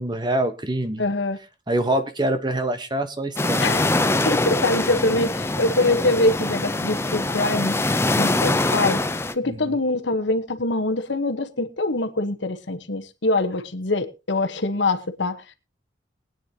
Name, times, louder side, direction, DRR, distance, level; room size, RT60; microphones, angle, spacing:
voice 1, 0.0-1.0 1.7-3.6 9.4-9.8, right 1 dB, 25° right, 1.1 m, -25 dB
voice 2, 1.0-1.4 3.6-4.0 4.3-9.0 9.3-15.5, left 2 dB, 70° left, 1.2 m, -24 dB
sound 1, 3.4-9.3, left 2 dB, 15° left, 0.6 m, -23 dB
22.0 x 9.2 x 2.9 m
head